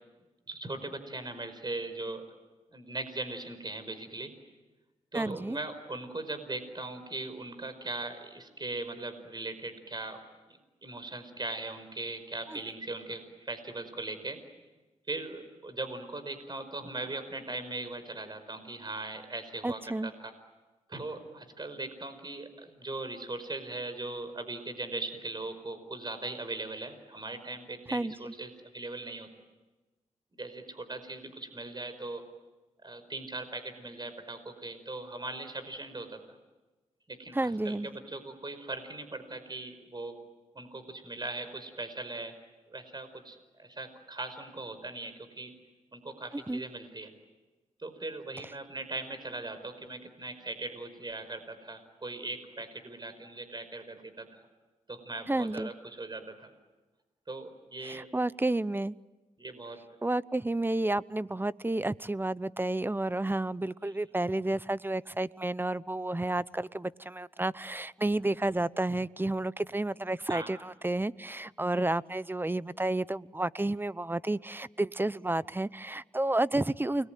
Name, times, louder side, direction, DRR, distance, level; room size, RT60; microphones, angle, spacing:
voice 1, 0.5-2.2 2.7-4.3 5.1-10.2 10.5-14.4 15.1-20.3 20.9-29.3 30.4-32.2 32.8-36.2 37.1-40.1 40.6-42.3 42.7-45.5 45.9-47.1 47.8-54.4 54.9-56.5 57.3-58.1 59.4-59.8 63.8-63.9 70.3-70.5, right 2 dB, 35° right, 10 dB, 5.2 m, -39 dB
voice 2, 5.1-5.6 12.5-12.6 19.6-20.1 27.9-28.3 37.3-37.9 46.5-46.6 55.3-55.7 57.8-59.0 60.0-77.1, right 2 dB, 15° right, 18 dB, 0.8 m, -31 dB
29.5 x 22.0 x 9.3 m, 1.2 s
cardioid pair, 55°, 13 cm